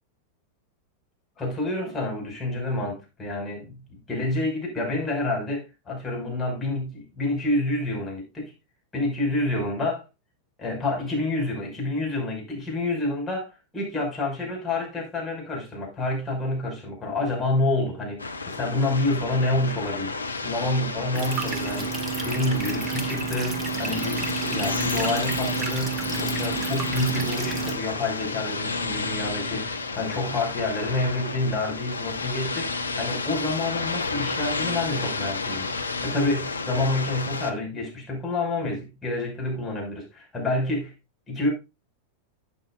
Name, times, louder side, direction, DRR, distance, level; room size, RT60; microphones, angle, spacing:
voice 1, 1.4-8.5 8.9-10.0 10.6-20.1 20.4-40.9 41.3-41.5, left 2 dB, 15° left, 5.8 m, -28 dB
sound 1, 18.2-37.5, left 4 dB, 80° left, 1.0 m, -31 dB
sound 2, 21.1-27.7, right 6 dB, 20° right, 1.8 m, -30 dB
12.0 x 8.8 x 2.5 m
figure-of-eight pair, 90°, 0 cm